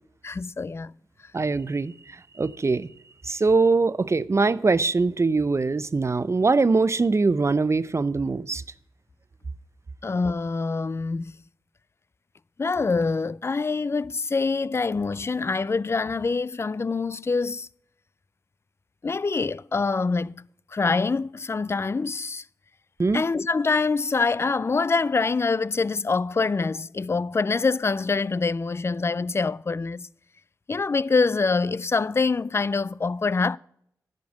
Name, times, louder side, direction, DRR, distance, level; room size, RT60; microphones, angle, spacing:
voice 1, 0.2-0.9 10.0-11.3 12.6-17.7 19.0-20.4 20.7-22.4 23.1-30.1 30.7-33.6, left 4 dB, 35° left, 0.3 m, -25 dB
voice 2, 1.3-2.9 3.2-8.6 23.0-23.2, right 3 dB, 40° right, 0.5 m, -22 dB
10.5 x 5.3 x 7.8 m
cardioid pair, 45°, 7 cm